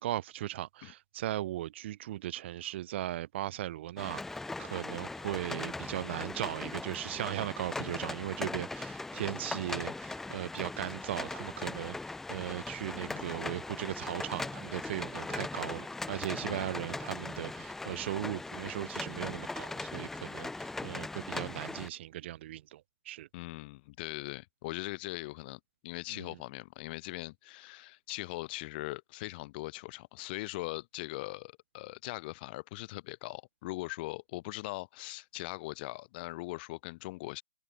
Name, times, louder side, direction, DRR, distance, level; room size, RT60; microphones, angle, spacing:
voice 1, 0.0-23.3 26.1-26.4, right 14 dB, 35° right, 1.7 m, -38 dB
sound 1, 4.0-21.9, left 2 dB, 5° left, 1.2 m, -39 dB
voice 2, 13.0-13.3 16.4-16.8 23.3-37.4, left 21 dB, 30° left, 4.0 m, -41 dB
figure-of-eight pair, 130°, 11 cm